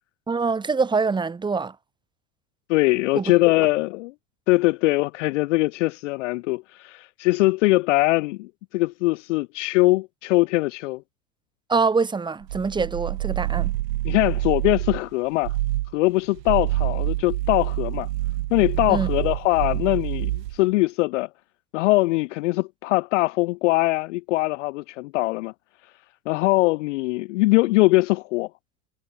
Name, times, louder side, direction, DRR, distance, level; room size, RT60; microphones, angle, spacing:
voice 1, 0.3-1.7 3.1-3.2 11.7-13.7 18.9-19.1, right 4 dB, 10° right, 2.2 m, -24 dB
voice 2, 2.7-4.1 4.5-11.0 14.0-15.6 15.9-18.1 18.5-21.3 21.7-25.5 26.3-28.5, left 22 dB, 50° left, 0.6 m, -22 dB
sound 1, 12.4-15.1 15.4-15.9 16.4-20.6, right 17 dB, 75° right, 1.5 m, -27 dB
supercardioid pair, 160°, 50 cm